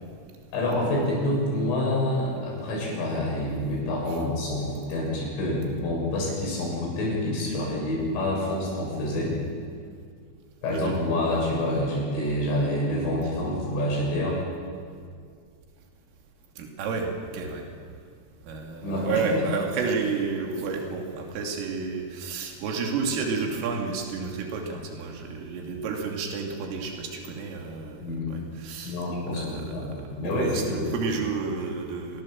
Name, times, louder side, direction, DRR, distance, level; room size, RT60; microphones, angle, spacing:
voice 1, 0.5-9.4 10.6-14.4 18.8-19.5 28.0-28.3 28.8-31.0, left 1 dB, 75° left, -3 dB, 9.7 m, -27 dB
voice 2, 16.6-17.7 18.4-29.0 29.3-32.2, right 4 dB, 80° right, 1 dB, 5.3 m, -31 dB
28.0 x 20.0 x 7.6 m, 2.1 s
omnidirectional pair, 5.8 m